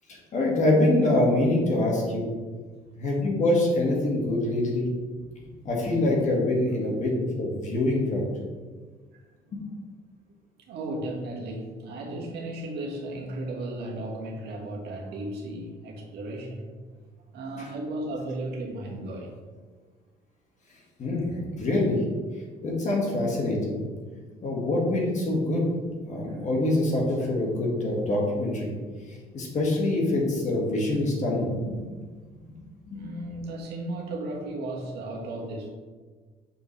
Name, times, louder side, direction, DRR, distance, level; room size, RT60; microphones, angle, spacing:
voice 1, 0.3-2.3 3.0-4.9 5.6-8.2 9.5-9.6 17.6-17.7 21.0-22.0 22.6-23.8 24.4-25.6 26.1-28.7 29.3-31.8 32.9-33.0, left 1 dB, 45° left, -1 dB, 1.8 m, -25 dB
voice 2, 10.7-16.7 17.3-19.3 32.9-35.7, right 1 dB, 75° right, -1 dB, 1.6 m, -35 dB
6.4 x 5.5 x 3.2 m, 1.4 s
cardioid pair, 110°, 17 cm